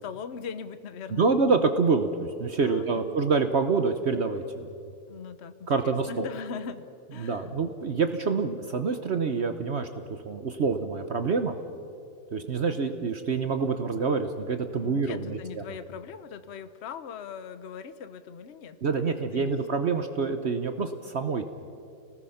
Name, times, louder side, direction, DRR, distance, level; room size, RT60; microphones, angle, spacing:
voice 1, 0.0-1.3 2.5-3.2 5.1-7.5 14.7-18.9 19.3-20.1, left 6 dB, 55° left, 11 dB, 1.1 m, -40 dB
voice 2, 1.1-4.7 5.7-6.3 7.2-9.9 10.2-11.5 12.3-15.6 18.8-21.5, right 4 dB, 55° right, 7 dB, 1.2 m, -26 dB
29.5 x 19.5 x 5.8 m, 2.5 s
omnidirectional pair, 1.5 m